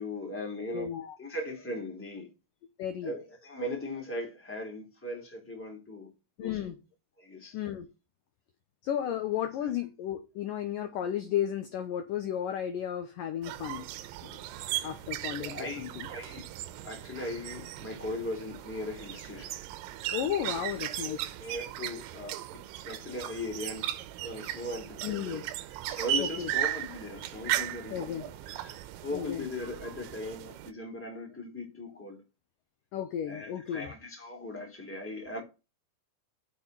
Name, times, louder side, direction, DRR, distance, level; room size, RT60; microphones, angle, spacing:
voice 1, 0.0-0.9 1.2-2.3 3.0-6.1 6.4-6.6 7.2-7.6 15.4-16.5 16.8-19.5 21.0-23.9 24.2-25.5 25.8-32.2 33.2-35.4, left 2 dB, 5° left, 3.0 m, -39 dB
voice 2, 0.7-1.2 2.8-3.1 6.4-6.7 7.5-7.9 8.8-13.9 14.2-14.4 14.8-16.1 20.1-21.2 24.5-24.7 25.0-25.4 26.2-26.5 27.9-28.2 29.1-29.5 32.9-33.9, left 10 dB, 80° left, 1.9 m, -33 dB
sound 1, 13.4-30.7, right 13 dB, 85° right, 3.1 m, -37 dB
9.7 x 6.3 x 5.6 m
omnidirectional pair, 5.3 m